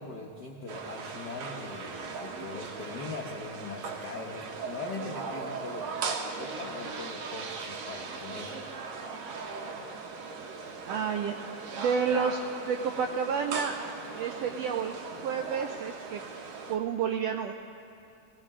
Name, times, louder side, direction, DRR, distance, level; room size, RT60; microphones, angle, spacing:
voice 1, 0.0-5.9 6.3-8.5, left 3 dB, 85° left, -1 dB, 0.9 m, -41 dB
sound 1, 0.7-16.8, right 4 dB, 70° right, 2.1 m, -38 dB
voice 2, 10.8-11.5 11.8-13.7 14.2-14.9 15.2-16.2 16.7-17.5, right 6 dB, 85° right, 4 dB, 1.4 m, -30 dB
19.0 x 17.5 x 3.7 m, 2.6 s
omnidirectional pair, 3.5 m